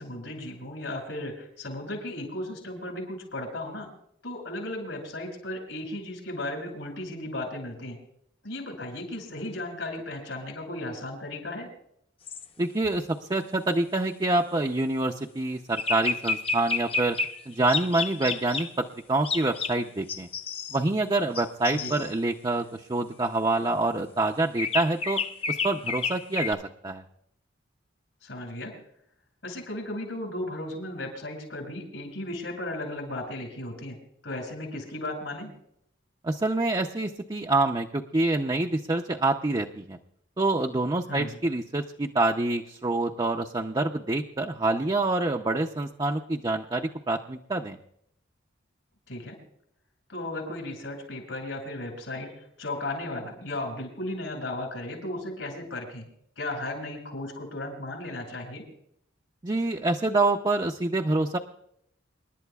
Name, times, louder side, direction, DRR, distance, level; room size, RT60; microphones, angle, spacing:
voice 1, 0.0-3.9 4.2-8.0 8.4-11.7 21.7-21.9 28.2-28.7 29.4-34.0 34.2-35.5 41.1-41.3 49.1-49.4 50.1-56.0 56.4-58.6, left 1 dB, 80° left, 2 dB, 6.6 m, -35 dB
sound 1, 12.3-12.5 15.8-17.4 17.7-18.7 19.2-19.8 20.1-20.8 21.3-22.1 24.6-26.5, left 4 dB, 30° left, 0.8 m, -30 dB
voice 2, 12.6-17.2 17.5-20.3 20.7-25.2 25.5-27.0 36.2-40.0 40.4-47.8 59.4-61.4, right 2 dB, 25° right, 2 dB, 0.5 m, -26 dB
28.5 x 11.5 x 2.3 m, 0.72 s
head